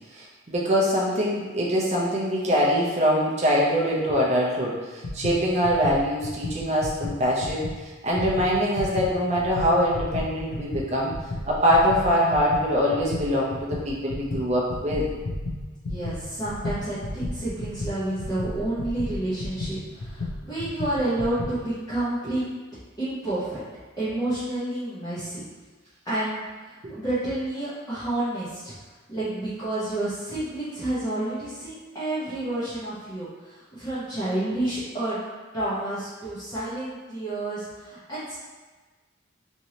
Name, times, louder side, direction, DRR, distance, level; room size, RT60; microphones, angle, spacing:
voice 1, 0.1-7.6 8.0-11.1 11.5-15.1 26.8-26.9, equal, 35° right, -5 dB, 0.5 m, -23 dB
sound 1, 5.0-7.8 8.1-21.6, left 2 dB, 75° left, 0.6 m, -33 dB
voice 2, 15.9-22.5 23.0-23.6 24.0-25.4 26.0-28.7 29.1-35.2 35.5-38.4, right 1 dB, 20° left, -14 dB, 0.9 m, -30 dB
3.1 x 2.6 x 2.8 m, 1.3 s
head